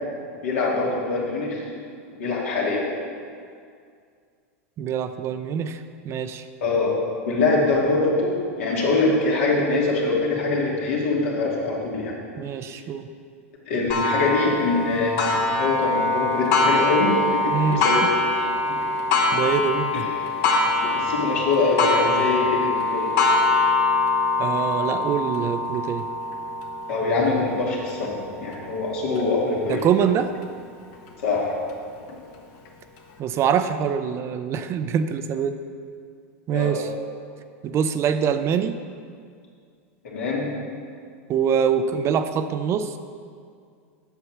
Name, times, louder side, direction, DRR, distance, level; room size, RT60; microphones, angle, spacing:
voice 1, 0.4-1.6 2.2-2.8 6.6-7.0 7.3-12.2 13.7-15.1 15.6-18.1 18.6-18.7 20.9-23.1 26.9-29.8 31.2-31.5 36.5-36.8 40.0-40.4, left 3 dB, 75° left, -3 dB, 2.5 m, -23 dB
voice 2, 4.8-6.5 12.4-13.1 17.5-17.8 19.3-20.1 24.4-26.1 29.7-30.3 33.2-35.6 36.5-36.9 37.6-38.8 41.3-43.0, right 7 dB, 35° right, 10 dB, 0.5 m, -24 dB
Clock, 13.9-29.2 29.8-29.9 30.4-30.5 31.5-31.6, left 2 dB, 55° left, 1.3 m, -23 dB
8.1 x 6.7 x 6.0 m, 2.2 s
hypercardioid pair, 115°, 8 cm